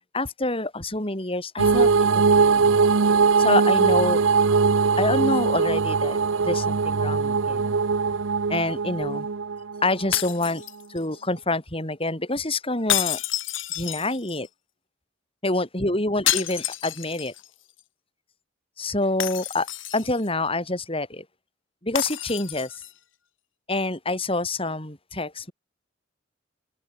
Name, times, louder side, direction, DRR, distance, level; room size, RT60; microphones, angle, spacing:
voice 1, 0.1-2.8 3.4-4.2 5.0-6.2 6.4-7.8 8.5-9.3 9.8-10.6 10.9-13.3 13.8-14.5 15.4-17.3 18.8-19.7 19.9-21.2 21.8-22.8 23.7-25.5, left 2 dB, 30° left, 7.9 m, -27 dB
sound 1, 1.6-10.3, right 5 dB, 90° right, 0.7 m, -21 dB
sound 2, 10.1-11.2 12.9-14.5 16.3-17.5 17.8-17.9 19.2-20.3 21.9-22.9, left 12 dB, 80° left, 4.1 m, -29 dB
head